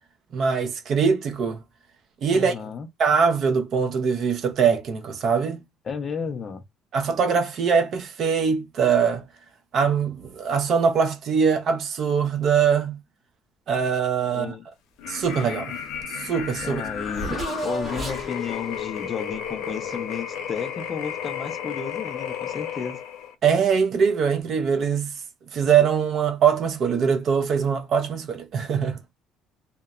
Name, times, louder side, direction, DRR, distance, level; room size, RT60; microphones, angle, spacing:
voice 1, 0.3-1.6 2.2-2.5 3.0-5.6 6.9-9.2 9.7-13.0 13.7-14.5 15.1-15.7 16.2-16.8 23.4-25.1 25.5-29.0, right 6 dB, 40° right, 0.5 m, -22 dB
voice 2, 2.3-2.9 5.8-6.6 14.3-14.6 16.6-23.0, left 6 dB, 25° left, 0.4 m, -33 dB
sound 1, 15.0-23.3, left 8 dB, 80° left, 0.7 m, -33 dB
Race car auto racing / Accelerating revving vroom, 16.0-16.1 16.3-20.3, right 1 dB, 20° right, 0.9 m, -35 dB
2.8 x 2.1 x 2.3 m
cardioid pair, 175°, 0 cm